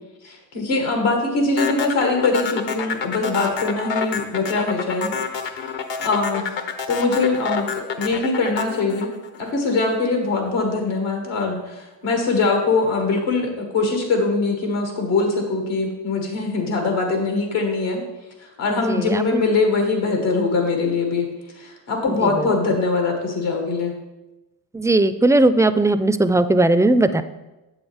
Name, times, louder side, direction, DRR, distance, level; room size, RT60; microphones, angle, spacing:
voice 1, 0.2-5.1 5.6-5.7 6.0-18.0 18.4-21.3 21.6-23.9, left 3 dB, 85° left, 2 dB, 1.9 m, -22 dB
sound 1, 1.6-9.9, left 6 dB, 70° left, 1.0 m, -28 dB
voice 2, 18.9-19.5 22.2-22.3 24.7-27.2, right 2 dB, 10° right, 12 dB, 0.3 m, -18 dB
7.7 x 7.2 x 3.5 m, 1.0 s
supercardioid pair, 55°, 45 cm